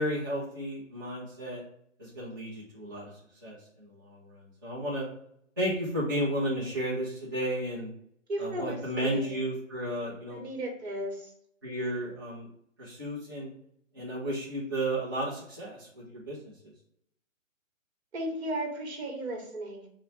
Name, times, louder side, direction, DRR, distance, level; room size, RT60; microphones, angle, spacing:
voice 1, 0.0-1.6 2.0-3.1 3.4-5.0 5.6-7.9 8.4-10.4 11.6-12.5 12.8-13.5 13.9-16.5, equal, 15° right, -8 dB, 0.7 m, -33 dB
voice 2, 8.3-9.4 10.3-11.3 11.7-11.9 18.1-19.9, right 1 dB, 55° right, 2 dB, 1.2 m, -35 dB
3.8 x 2.1 x 3.8 m, 0.71 s
hypercardioid pair, 175°, 40 cm